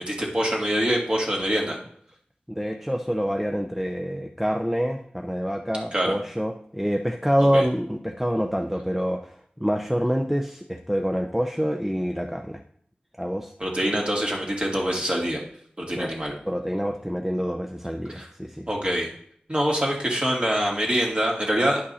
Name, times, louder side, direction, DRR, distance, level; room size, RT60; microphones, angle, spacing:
voice 1, 0.0-1.8 5.9-6.1 7.4-7.6 13.6-15.4 15.8-16.3 18.1-18.3 18.7-19.1 19.5-21.8, equal, 30° right, -2 dB, 2.3 m, -25 dB
voice 2, 2.5-12.6 13.2-13.5 13.9-14.0 16.0-16.1 16.5-18.7, equal, 5° right, 3 dB, 0.6 m, -26 dB
10.5 x 5.2 x 4.2 m, 0.64 s
wide cardioid pair, 50°, 3 cm